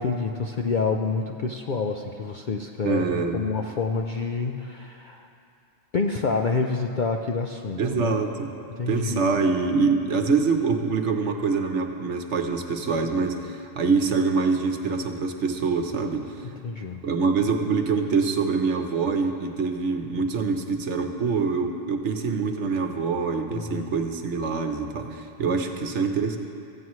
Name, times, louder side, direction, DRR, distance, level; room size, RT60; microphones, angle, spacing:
voice 1, 0.0-5.3 5.9-8.2 8.7-9.3 16.4-17.0 23.5-23.9, left 4 dB, 55° left, 3 dB, 0.5 m, -28 dB
voice 2, 2.8-3.4 7.8-8.5 8.9-16.5 17.0-26.4, right 4 dB, 65° right, 5 dB, 1.1 m, -25 dB
17.0 x 14.5 x 3.1 m, 2.6 s
omnidirectional pair, 1.3 m